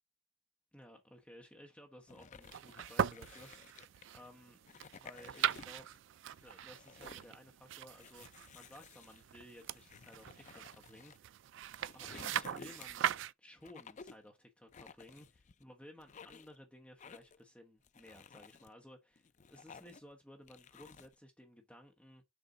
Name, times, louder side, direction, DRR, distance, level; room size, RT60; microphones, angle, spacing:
voice 1, 0.7-4.6 5.0-5.9 6.4-11.3 11.9-22.2, left 1 dB, 5° left, 0.9 m, -57 dB
sound 1, 2.1-4.2 4.6-6.0 6.3-7.3 7.9-11.2 11.6-13.1 13.6-14.3 14.7-15.6 16.0-16.6 17.0-17.4 17.8-18.7 19.2-20.1 20.5-21.1, left 5 dB, 35° left, 0.4 m, -55 dB
sound 2, 2.4-13.3, right 10 dB, 60° right, 0.3 m, -40 dB
6.8 x 5.3 x 3.8 m
head